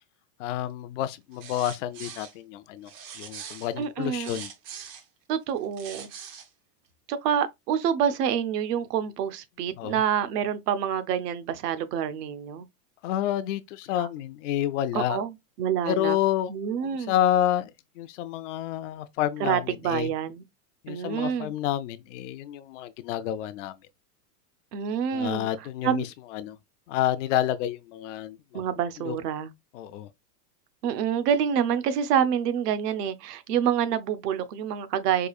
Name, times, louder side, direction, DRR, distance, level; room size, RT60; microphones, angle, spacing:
voice 1, 0.4-2.9 3.2-4.5 9.8-10.0 13.0-15.2 15.9-16.5 16.8-20.1 20.8-23.7 25.1-26.6 26.9-28.6 29.0-29.2 29.7-30.1, left 12 dB, 50° left, 0.4 m, -29 dB
sound 1, 1.3-2.3 2.9-5.0 5.6-6.5, right 7 dB, 30° right, 0.4 m, -42 dB
voice 2, 3.8-4.4 5.3-6.1 7.1-12.7 14.0-14.1 14.9-15.3 15.6-16.2 16.5-17.1 19.4-20.4 20.9-21.5 24.7-25.5 25.8-26.1 28.5-29.5 30.8-35.3, right 8 dB, 70° right, 0.8 m, -27 dB
4.9 x 2.4 x 2.4 m
supercardioid pair, 140°, 49 cm